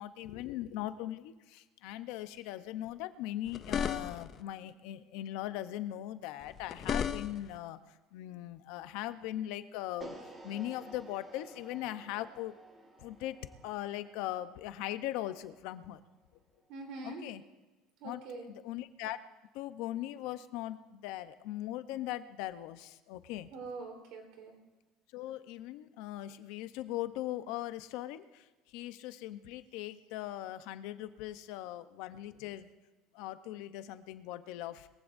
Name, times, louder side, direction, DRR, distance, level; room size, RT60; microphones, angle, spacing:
voice 1, 0.0-7.8 8.1-10.2 10.4-12.6 13.0-16.0 17.0-17.4 18.0-18.2 18.6-19.2 19.5-23.5 25.1-32.7 33.1-34.9, left 14 dB, 65° left, 11 dB, 0.7 m, -40 dB
sound 1, 3.5-4.4 6.4-7.6, left 7 dB, 30° left, 0.5 m, -35 dB
sound 2, 10.0-16.2, right 2 dB, 15° right, 1.6 m, -53 dB
voice 2, 16.7-17.3 18.0-18.5 23.5-24.6, right 3 dB, 60° right, 1 dB, 3.8 m, -44 dB
22.0 x 15.5 x 2.6 m, 1.1 s
cardioid pair, 170°, 0 cm